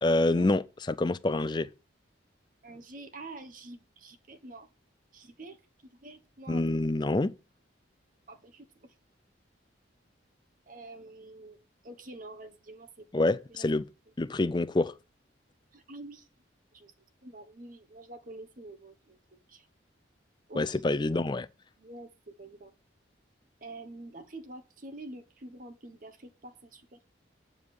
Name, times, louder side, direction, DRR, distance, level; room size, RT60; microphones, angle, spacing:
voice 1, 0.0-1.7 6.5-7.3 13.1-13.9 14.2-14.9 20.6-21.5, left 2 dB, 25° left, 0.4 m, -27 dB
voice 2, 2.6-4.7 5.1-5.6 5.8-6.6 8.3-8.9 10.7-13.7 15.7-16.3 16.7-16.9 17.2-19.7 20.5-21.2 21.8-22.7 23.6-27.0, right 2 dB, 45° right, 1.1 m, -47 dB
9.5 x 4.9 x 7.0 m
head